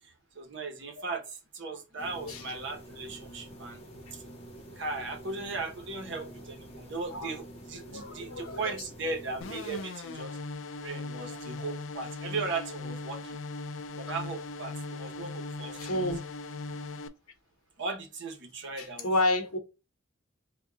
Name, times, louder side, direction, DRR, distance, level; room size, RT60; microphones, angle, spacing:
voice 1, 0.0-3.8 4.1-4.2 4.7-10.4 10.8-13.4 13.9-16.0 17.8-19.1, right 3 dB, 55° right, 0.9 m, -37 dB
Room white noise - Room Ambience, 2.0-9.8, right 1 dB, 30° left, 1.0 m, -47 dB
voice 2, 7.8-8.8 11.6-11.7 15.8-16.2 18.8-19.6, left 1 dB, 85° left, 0.8 m, -30 dB
sound 1, 9.4-17.1, left 3 dB, 60° left, 0.4 m, -39 dB
3.5 x 2.2 x 3.7 m
head